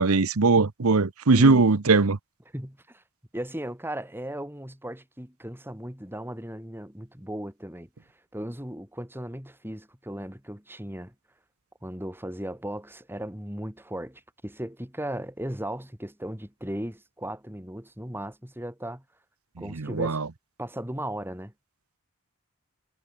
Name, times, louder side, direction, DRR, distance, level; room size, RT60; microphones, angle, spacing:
voice 1, 0.0-2.2 19.7-20.3, right 3 dB, 80° right, 0.9 m, -20 dB
voice 2, 1.4-1.7 2.5-3.0 3.3-7.9 8.3-11.1 11.8-19.0 19.6-20.2 20.6-21.5, right 1 dB, 10° right, 3.7 m, -36 dB
head